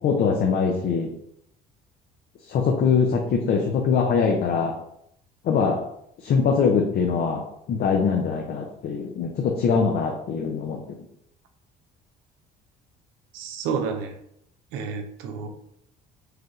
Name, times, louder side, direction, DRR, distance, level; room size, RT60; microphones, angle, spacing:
voice 1, 0.0-1.1 2.5-4.8 5.4-5.8 6.2-10.8, left 5 dB, 50° left, 1 dB, 0.6 m, -23 dB
voice 2, 13.3-14.2 14.7-15.6, right 5 dB, 80° right, 6 dB, 0.6 m, -30 dB
4.8 x 2.3 x 3.1 m, 0.74 s
supercardioid pair, 75°, 20 cm